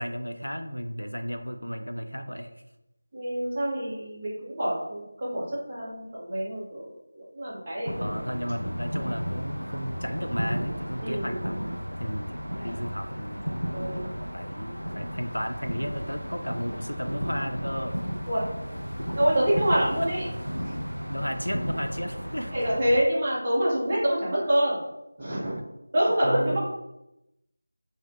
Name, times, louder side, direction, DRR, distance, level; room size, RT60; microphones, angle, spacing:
voice 1, 0.0-2.5 8.0-13.5 14.3-17.9 20.0-20.1 21.1-22.6 26.2-26.6, equal, 85° left, 9 dB, 0.3 m, -34 dB
voice 2, 3.1-5.4 5.7-6.9 7.1-8.2 11.0-11.4 13.7-14.1 18.3-18.4 19.2-20.2 22.5-24.8 25.2-25.6 25.9-26.6, equal, 25° right, -8 dB, 1.2 m, -26 dB
sound 1, 7.9-23.0, equal, 90° right, 0.3 m, -33 dB
3.5 x 2.7 x 2.3 m, 0.88 s
figure-of-eight pair, 165°, 0 cm